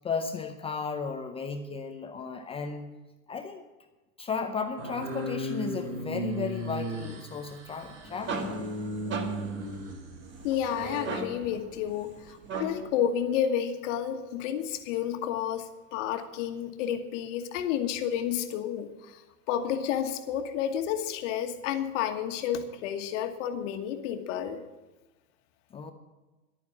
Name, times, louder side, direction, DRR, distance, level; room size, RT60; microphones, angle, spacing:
voice 1, 0.0-2.9 3.3-3.6 4.2-8.6 25.7-25.9, left 5 dB, 15° left, 6 dB, 0.5 m, -34 dB
sound 1, 4.8-11.2, equal, 60° right, 3.4 m, -36 dB
sound 2, 7.8-13.0, right 4 dB, 25° right, 1.2 m, -39 dB
voice 2, 10.4-19.2 19.5-24.6, left 9 dB, 50° left, 7 dB, 1.5 m, -31 dB
11.5 x 9.4 x 7.2 m, 1.1 s
hypercardioid pair, 110°, 46 cm